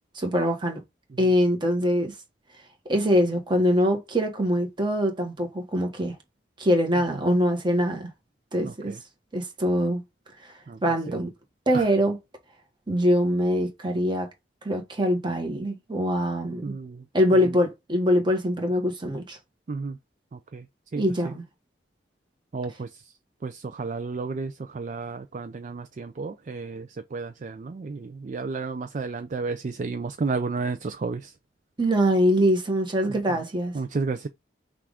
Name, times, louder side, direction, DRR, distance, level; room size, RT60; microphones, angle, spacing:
voice 1, 0.1-0.8 1.2-2.1 2.9-6.2 6.6-8.1 8.5-8.9 9.3-10.0 10.8-11.3 11.7-12.2 12.9-14.3 14.6-16.7 17.1-19.4 20.9-21.4 31.8-33.7, equal, 25° right, 1.2 m, -23 dB
voice 2, 8.6-9.0 10.7-10.8 11.7-11.8 16.6-17.0 19.7-20.0 20.3-20.6 20.9-21.0 22.5-22.9 23.4-31.3 33.7-34.3, right 4 dB, 45° right, 0.4 m, -32 dB
5.9 x 2.5 x 3.3 m
head